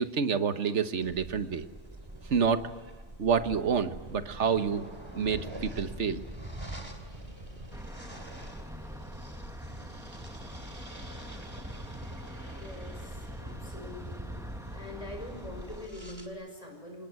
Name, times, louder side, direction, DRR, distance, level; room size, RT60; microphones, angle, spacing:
voice 1, 0.0-1.7 2.3-2.6 3.2-4.8 5.1-6.2, right 6 dB, 80° right, 10 dB, 1.5 m, -28 dB
sound 1, 1.0-16.3, right 1 dB, 25° right, 2.9 m, -44 dB
sound 2, 3.3-12.0, equal, 45° right, 6.3 m, -53 dB
sound 3, 7.7-15.9, equal, 5° right, 1.3 m, -47 dB
voice 2, 12.5-14.4 14.7-17.1, left 1 dB, 30° left, 3 dB, 5.9 m, -44 dB
26.5 x 19.5 x 9.5 m, 1.4 s
omnidirectional pair, 1.2 m